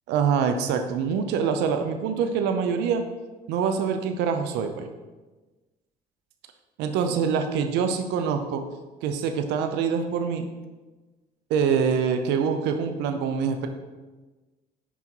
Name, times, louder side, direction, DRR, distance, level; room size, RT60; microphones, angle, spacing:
voice 1, 0.1-3.0 3.5-4.9 6.8-8.6 9.0-10.5 11.5-13.7, right 6 dB, 90° right, 6 dB, 0.7 m, -25 dB
6.1 x 5.3 x 4.6 m, 1.2 s
cardioid pair, 110°, 17 cm